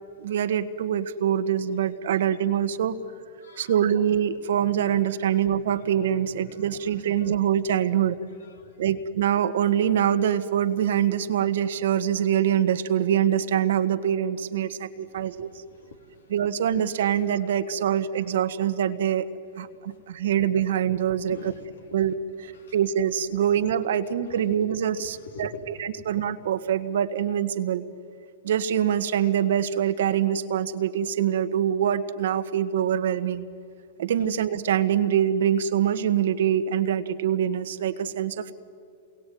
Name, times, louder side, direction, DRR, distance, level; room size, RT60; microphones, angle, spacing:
voice 1, 0.2-2.9 3.6-8.2 8.8-15.5 16.3-19.3 19.6-21.5 21.9-22.1 22.4-27.8 28.4-33.5 34.0-38.5, right 9 dB, 75° right, 11 dB, 1.5 m, -24 dB
voice 2, 3.4-3.7 8.6-8.9 15.4-16.2 21.3-21.8 22.5-22.7 24.3-24.6 25.0-26.0, left 4 dB, 85° left, 6 dB, 3.4 m, -44 dB
28.0 x 22.0 x 9.3 m, 2.5 s
hypercardioid pair, 125°, 0 cm